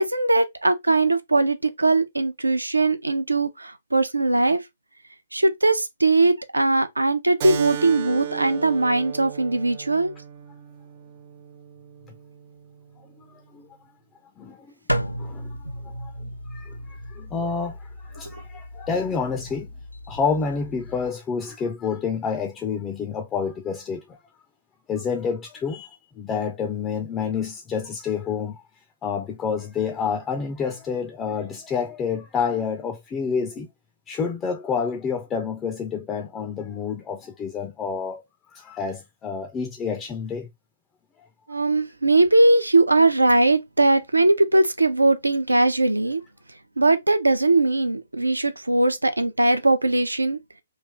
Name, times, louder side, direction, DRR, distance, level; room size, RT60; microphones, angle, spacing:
voice 1, 0.0-4.6 5.3-10.1 41.5-46.2 46.8-50.4, right 2 dB, 80° right, 0.5 m, -20 dB
Keyboard (musical), 7.4-12.5, right 8 dB, 35° right, 0.6 m, -35 dB
voice 2, 14.4-14.7 15.2-15.6 15.8-16.1 16.5-19.7 20.1-24.2 24.9-28.6 29.0-33.7 34.1-38.2 38.5-40.5, left 6 dB, 15° left, 0.4 m, -28 dB
sound 1, 14.9-21.1, equal, 90° left, 0.4 m, -34 dB
3.3 x 2.5 x 3.4 m
figure-of-eight pair, 130°, 0 cm